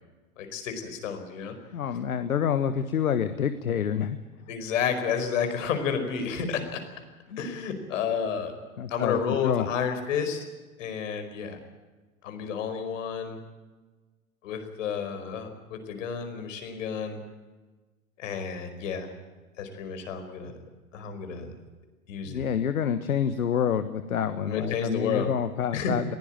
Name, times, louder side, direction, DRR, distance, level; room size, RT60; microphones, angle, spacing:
voice 1, 0.4-1.5 4.5-6.8 7.4-8.5 8.9-10.4 10.8-11.6 12.2-13.4 14.4-17.2 18.2-19.1 19.6-20.5 20.9-21.5 22.1-22.5 24.5-25.3 25.7-25.9, left 6 dB, 60° left, 7 dB, 5.0 m, -31 dB
voice 2, 1.7-4.2 7.3-7.4 8.8-9.7 22.3-26.1, left 8 dB, 75° left, 12 dB, 1.4 m, -27 dB
22.0 x 16.5 x 8.8 m, 1.3 s
hypercardioid pair, 110°, 43 cm